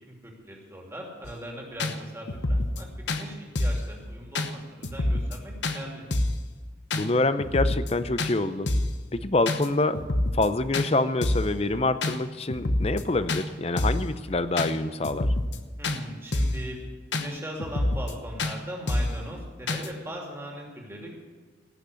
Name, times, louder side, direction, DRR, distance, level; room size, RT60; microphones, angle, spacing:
voice 1, 0.0-6.1 15.8-16.8 17.1-21.2, equal, 15° right, -1 dB, 2.6 m, -40 dB
sound 1, 1.2-1.3 1.8-1.9 2.3-2.8 3.1-3.2 3.6-3.9 4.4-4.5 4.8-5.4 5.6-5.8 6.1-6.4 6.9-7.1 7.4-7.9 8.2-8.3 8.7-9.0 9.5-9.7 9.9-10.5 10.7-10.9 11.2-11.5 12.0-12.2 12.5-13.0 13.3-13.4 13.8-14.1 14.6-14.7 15.0-15.6 15.8-16.0 16.3-16.6 17.1-17.3 17.6-18.1 18.4-18.5 18.9-19.2 19.7-19.9, left 1 dB, 70° left, 1.0 m, -26 dB
voice 2, 6.9-8.7 9.1-10.0 10.3-15.3, left 2 dB, 30° left, 12 dB, 0.6 m, -26 dB
17.5 x 6.6 x 8.2 m, 1.5 s
head